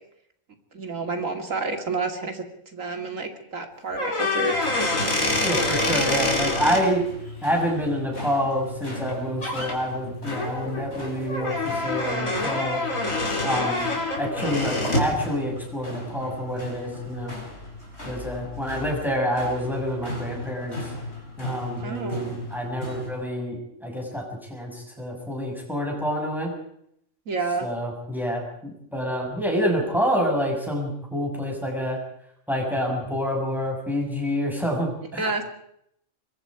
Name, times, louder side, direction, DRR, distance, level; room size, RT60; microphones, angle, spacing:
voice 1, 0.7-2.4 2.7-4.6 21.8-22.3 27.3-27.7 35.2-35.4, right 3 dB, 80° right, 5 dB, 2.8 m, -29 dB
sound 1, 3.9-6.8 9.0-9.1 9.4-9.7 10.2-15.1, left 2 dB, 85° left, 4.2 m, -26 dB
sound 2, 4.5-23.1, left 1 dB, 55° left, 5.4 m, -38 dB
voice 2, 5.4-7.0 7.4-12.8 13.4-13.8 14.2-17.3 18.1-20.8 21.4-26.5 27.6-32.0 32.5-35.3, equal, ahead, -1 dB, 6.7 m, -27 dB
24.5 x 22.0 x 4.9 m, 0.73 s
omnidirectional pair, 1.4 m